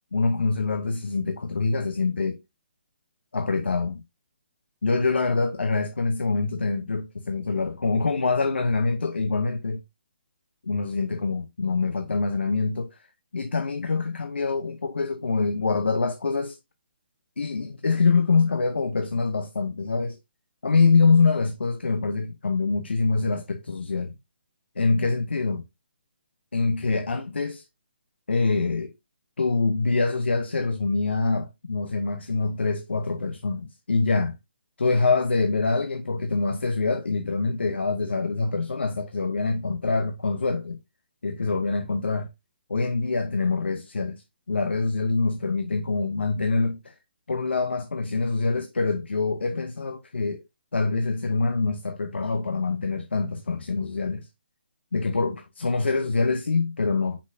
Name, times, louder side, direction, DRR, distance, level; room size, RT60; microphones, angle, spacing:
voice 1, 0.1-2.4 3.3-4.0 4.8-9.8 10.6-13.0 13.3-16.6 17.4-20.2 20.6-24.1 24.8-25.6 26.5-27.6 28.3-28.9 29.4-34.4 34.8-40.8 41.2-42.3 42.7-44.2 44.5-46.9 47.3-50.4 50.7-54.3 54.9-57.2, left 4 dB, 85° left, 0.9 m, -25 dB
6.4 x 5.9 x 2.7 m
hypercardioid pair, 150°, 6 cm